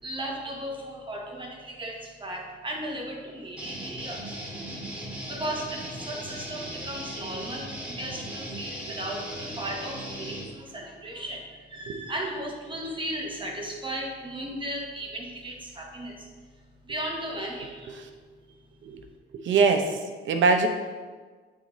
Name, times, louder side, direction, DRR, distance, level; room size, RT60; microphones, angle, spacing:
voice 1, 0.0-4.7 4.9-16.3 16.8-18.0, right 1 dB, 25° right, 0 dB, 1.1 m, -36 dB
sound 1, 3.6-10.4, equal, 5° right, 1.9 m, -38 dB
voice 2, 19.4-20.7, right 4 dB, 70° right, 5 dB, 0.7 m, -23 dB
9.0 x 3.8 x 3.1 m, 1.4 s
cardioid pair, 90°, 20 cm